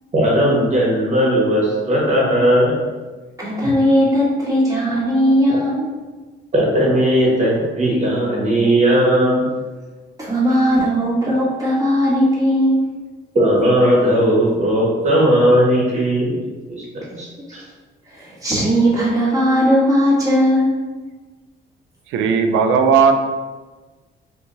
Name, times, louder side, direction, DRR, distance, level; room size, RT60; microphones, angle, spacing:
voice 1, 0.1-2.8 6.5-9.5 13.3-16.4 16.7-17.6, equal, 35° right, -4 dB, 1.3 m, -17 dB
voice 2, 3.4-5.9 10.2-12.8 17.1-17.2 17.5-17.6 18.1-20.7, equal, 15° right, -6 dB, 1.4 m, -17 dB
voice 3, 22.1-23.1, right 6 dB, 90° right, 6 dB, 0.4 m, -15 dB
2.9 x 2.7 x 3.8 m, 1.3 s
cardioid pair, 90°, 20 cm